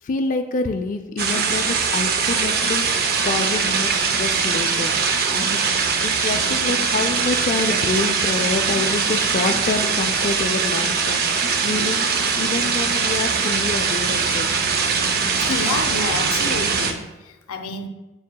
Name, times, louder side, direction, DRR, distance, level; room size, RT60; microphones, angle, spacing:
voice 1, 0.0-4.9 5.3-5.6 6.0-12.1 12.4-14.5, left 3 dB, 40° left, 4 dB, 0.3 m, -27 dB
sound 1, 1.2-16.9, right 5 dB, 45° right, 0.5 m, -21 dB
voice 2, 15.4-17.9, left 4 dB, 85° left, 7 dB, 0.6 m, -29 dB
7.3 x 6.3 x 2.2 m, 1.1 s
head